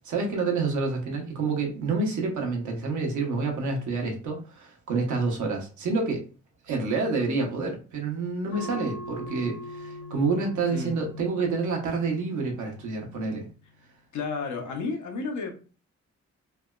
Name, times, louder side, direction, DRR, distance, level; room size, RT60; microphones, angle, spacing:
voice 1, 0.0-6.2 6.6-13.5, right 4 dB, 80° right, 0.9 m, -28 dB
sound 1, 8.5-13.6, left 2 dB, 50° left, 0.5 m, -42 dB
voice 2, 14.1-15.5, left 4 dB, 80° left, 0.8 m, -31 dB
3.3 x 2.1 x 2.3 m
cardioid pair, 80°, 29 cm